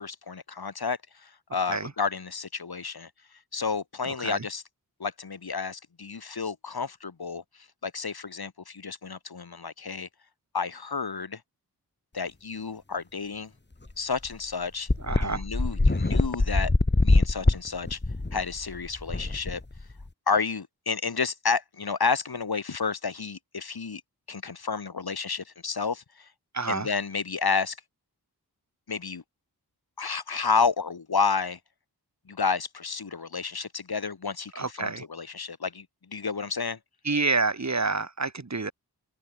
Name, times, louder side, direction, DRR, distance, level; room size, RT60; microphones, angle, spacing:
voice 1, 0.0-3.1 3.5-4.6 5.0-10.1 10.5-11.4 12.1-13.5 14.0-14.9 15.2-16.7 17.0-18.0 18.3-19.6 20.3-24.0 24.3-26.3 26.7-27.8 28.9-29.2 30.0-31.6 32.3-36.8, left 5 dB, 70° left, 6.1 m, -31 dB
voice 2, 4.0-4.4 15.0-15.4 26.5-26.9 34.6-35.0 37.0-38.7, right 3 dB, 45° right, 6.1 m, -28 dB
sound 1, 13.9-14.0 14.2-14.3 14.9-20.1, left 2 dB, 25° left, 5.0 m, -24 dB
open air
wide cardioid pair, 100°, 38 cm